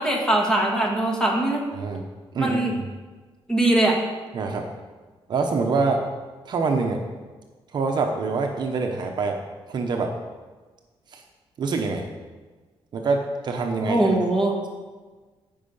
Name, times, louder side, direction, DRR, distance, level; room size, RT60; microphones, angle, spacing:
voice 1, 0.0-1.7 2.4-2.8 3.5-4.0 13.8-14.6, right 1 dB, 5° left, -1 dB, 1.8 m, -21 dB
voice 2, 2.3-2.9 4.3-4.6 5.3-6.0 6.4-7.0 7.7-9.4 9.7-10.1 11.1-11.2 11.6-12.0 12.9-14.1, right 4 dB, 50° right, 3 dB, 1.0 m, -25 dB
15.5 x 5.6 x 5.5 m, 1.3 s
wide cardioid pair, 170°, 10 cm